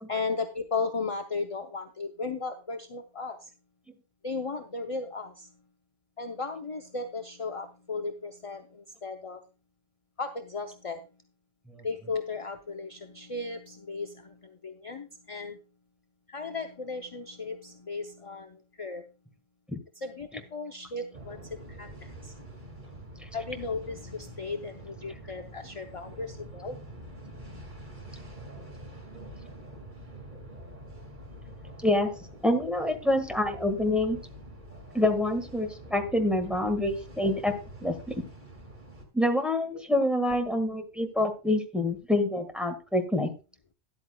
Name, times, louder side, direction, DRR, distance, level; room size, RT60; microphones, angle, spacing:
voice 1, 0.1-3.5 4.2-5.5 6.2-9.4 10.2-11.1 11.8-15.6 16.3-19.0 20.0-22.3 23.3-26.8, left 4 dB, 35° left, 5 dB, 0.7 m, -36 dB
sound 1, 21.1-39.1, right 1 dB, 50° right, 2.4 m, -46 dB
voice 2, 32.4-34.2 34.9-37.5 37.8-38.1 39.1-43.3, left 1 dB, ahead, 4 dB, 1.5 m, -26 dB
13.0 x 10.5 x 2.3 m, 0.32 s
omnidirectional pair, 1.1 m